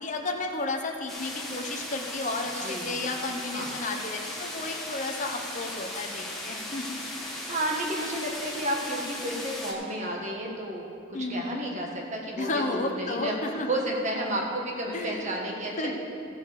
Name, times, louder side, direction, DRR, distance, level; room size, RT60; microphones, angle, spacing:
voice 1, 0.0-7.0 11.1-11.6 12.4-13.7 14.9-15.2 15.8-15.9, left 2 dB, 35° left, 3 dB, 0.9 m, -32 dB
sound 1, 1.1-9.7, left 1 dB, ahead, 1.3 m, -37 dB
voice 2, 2.5-3.3 3.5-3.9 7.4-13.4 13.7-15.9, right 1 dB, 35° right, -1 dB, 1.5 m, -32 dB
14.5 x 5.0 x 6.8 m, 2.5 s
head